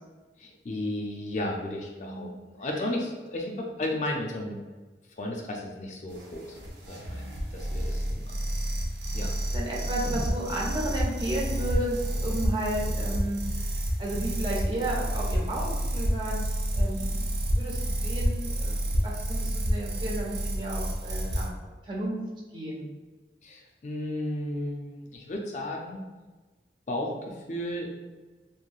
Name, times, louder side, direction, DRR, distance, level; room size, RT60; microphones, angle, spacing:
voice 1, 0.4-4.6 5.2-6.6 6.9-7.2 7.5-8.4 9.1-9.3 23.4-26.0 26.9-27.9, left 1 dB, 40° left, 0 dB, 0.4 m, -34 dB
voice 2, 2.0-2.4 7.1-7.3 9.5-13.7 14.0-15.6 15.9-16.5 16.7-21.5 21.8-22.2 22.5-22.9, right 1 dB, 25° right, -4 dB, 0.6 m, -33 dB
sound 1, 6.1-21.5, equal, 75° right, 0.5 m, -29 dB
3.0 x 2.6 x 2.3 m, 1.3 s
head